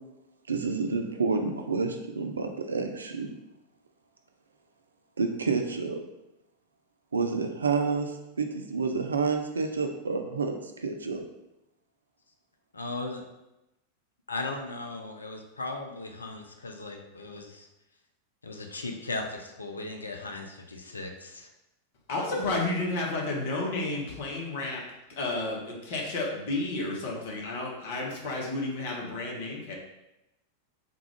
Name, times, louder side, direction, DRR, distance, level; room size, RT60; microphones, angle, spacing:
voice 1, 0.5-3.3 5.2-6.0 7.1-11.3 22.3-22.5, right 4 dB, 75° right, 5 dB, 0.4 m, -29 dB
voice 2, 12.7-13.3 14.3-17.7 18.4-21.5, left 2 dB, 75° left, 3 dB, 0.4 m, -37 dB
voice 3, 22.1-24.8 25.2-29.7, left 2 dB, 50° left, -1 dB, 0.9 m, -31 dB
3.5 x 2.4 x 3.4 m, 0.93 s
figure-of-eight pair, 90°, 0 cm